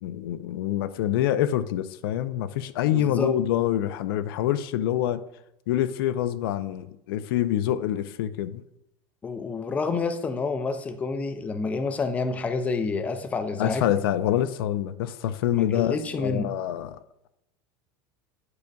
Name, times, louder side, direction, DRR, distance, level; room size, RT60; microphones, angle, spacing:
voice 1, 0.0-5.2 5.7-8.6 13.6-17.0, left 11 dB, 85° left, 0.5 m, -26 dB
voice 2, 2.9-3.3 9.2-13.9 15.5-16.5, left 4 dB, 10° left, 0.4 m, -28 dB
9.6 x 5.1 x 2.3 m
supercardioid pair, 170°, 12 cm